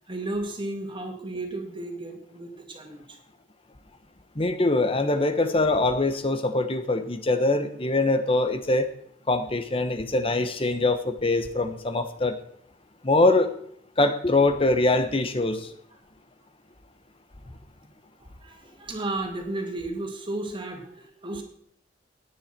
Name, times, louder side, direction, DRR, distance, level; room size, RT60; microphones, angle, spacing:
voice 1, 0.1-3.2 18.2-21.4, right 2 dB, 25° right, 3 dB, 2.3 m, -34 dB
voice 2, 4.3-8.9 9.3-12.4 13.0-13.5 14.0-15.7, left 2 dB, 30° left, 9 dB, 1.2 m, -23 dB
16.5 x 10.0 x 4.5 m, 0.66 s
head